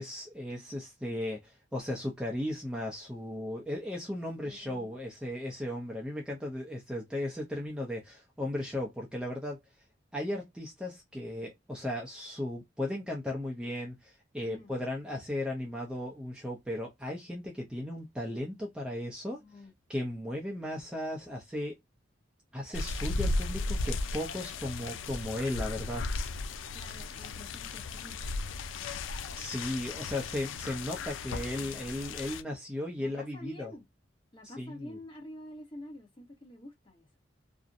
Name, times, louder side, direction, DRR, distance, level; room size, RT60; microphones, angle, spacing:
voice 1, 0.0-9.6 10.1-19.4 19.9-21.7 22.5-26.1 29.4-33.7 34.4-35.0, left 1 dB, 5° right, 0.4 m, -36 dB
voice 2, 4.4-4.9 14.4-14.7 19.4-19.7 26.7-28.3 33.0-33.8 34.3-37.1, left 1 dB, 25° left, 0.9 m, -48 dB
sound 1, 22.7-32.4, left 3 dB, 85° left, 0.4 m, -35 dB
2.5 x 2.0 x 2.4 m
head